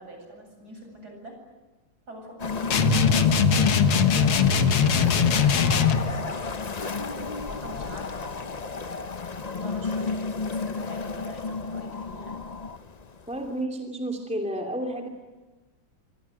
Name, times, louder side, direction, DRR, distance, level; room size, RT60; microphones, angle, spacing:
voice 1, 0.0-1.4 2.1-4.5 5.8-8.4 9.3-12.4, right 1 dB, 50° right, 3 dB, 8.6 m, -45 dB
sound 1, 2.4-13.6, left 4 dB, 65° left, 0.4 m, -32 dB
sound 2, 2.7-6.1, left 6 dB, 85° left, 2.4 m, -20 dB
voice 2, 13.3-15.1, right 1 dB, 5° right, 2 dB, 2.8 m, -31 dB
27.5 x 24.0 x 9.1 m, 1.2 s
omnidirectional pair, 2.3 m